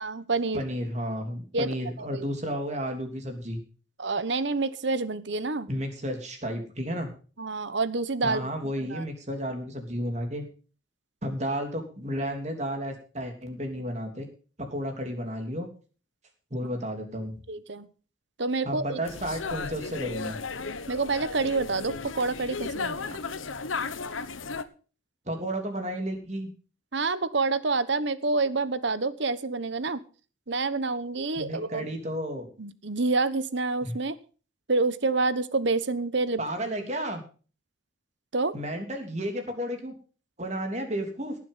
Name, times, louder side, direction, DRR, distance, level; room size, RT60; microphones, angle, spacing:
voice 1, 0.0-0.6 1.5-1.7 2.0-2.3 4.0-5.7 7.4-9.0 17.5-17.9 18.4-19.0 20.9-23.2 26.9-30.0 30.5-31.9 32.6-34.2 34.7-36.4 38.3-38.5, right 3 dB, 65° right, 15 dB, 1.1 m, -28 dB
voice 2, 0.5-3.6 5.7-7.1 8.2-10.4 11.2-14.3 14.6-15.7 16.5-17.3 18.6-20.4 25.3-26.5 31.3-32.5 33.8-33.9 36.4-37.2 38.5-39.9 40.4-41.4, equal, 35° right, 4 dB, 3.2 m, -32 dB
sound 1, 19.0-24.6, left 4 dB, 90° left, 1.1 m, -35 dB
18.0 x 7.5 x 5.7 m, 0.38 s
head